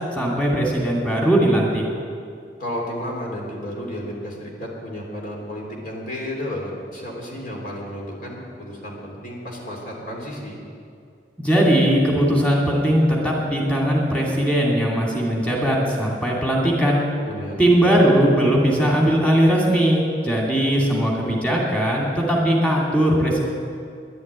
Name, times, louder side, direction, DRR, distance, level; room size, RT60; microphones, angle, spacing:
voice 1, 0.2-1.8 11.4-17.0 17.6-23.4, right 1 dB, 5° left, -3 dB, 2.5 m, -19 dB
voice 2, 2.6-10.6 17.2-17.6, equal, 50° left, -1 dB, 3.4 m, -32 dB
11.0 x 11.0 x 9.6 m, 2.4 s
head